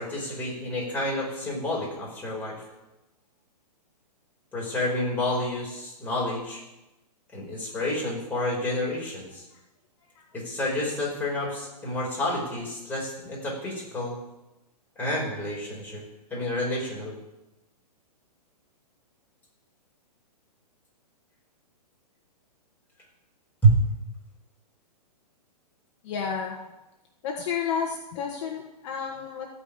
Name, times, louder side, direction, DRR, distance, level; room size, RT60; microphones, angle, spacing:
voice 1, 0.0-2.6 4.5-6.6 7.3-9.4 10.3-14.2 15.0-16.0 16.3-17.1 23.6-23.8, equal, 10° left, -5 dB, 4.8 m, -28 dB
voice 2, 26.0-26.6 27.2-29.5, left 6 dB, 45° left, 0 dB, 1.6 m, -31 dB
15.0 x 5.4 x 8.6 m, 0.99 s
hypercardioid pair, 140°, 21 cm